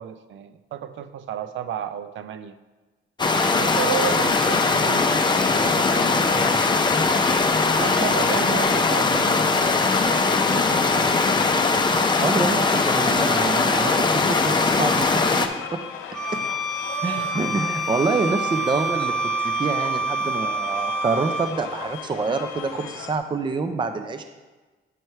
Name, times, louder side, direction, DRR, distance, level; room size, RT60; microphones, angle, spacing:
voice 1, 0.0-2.5 3.5-5.1 5.5-6.6 7.7-9.8 10.1-11.1 12.5-12.7 16.3-16.5 17.1-17.3, right 9 dB, 75° right, 10 dB, 0.6 m, -33 dB
sound 1, 3.2-15.5, left 3 dB, 20° left, 0.6 m, -20 dB
sound 2, 4.8-23.2, left 7 dB, 90° left, 0.6 m, -38 dB
voice 2, 12.2-15.8 16.3-16.4 17.0-19.1 19.4-24.2, right 4 dB, 25° right, 8 dB, 0.5 m, -27 dB
Bowed string instrument, 16.1-21.6, right 2 dB, ahead, 1.1 m, -27 dB
9.1 x 3.1 x 5.5 m, 1.2 s
cardioid pair, 90°, 20 cm